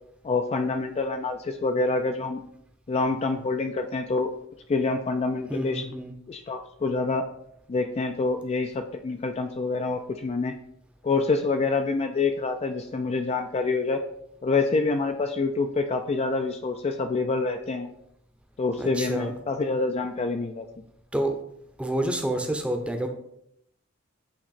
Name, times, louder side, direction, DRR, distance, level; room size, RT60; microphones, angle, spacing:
voice 1, 0.2-2.4 2.9-4.3 4.7-5.8 6.3-7.3 7.7-10.5 11.0-14.0 14.4-17.9 18.6-20.7, left 3 dB, 30° left, 6 dB, 0.3 m, -26 dB
voice 2, 5.5-6.1 18.8-19.3 21.1-21.3 21.8-23.1, right 1 dB, 5° right, 4 dB, 0.7 m, -28 dB
8.7 x 3.0 x 4.1 m, 0.75 s
head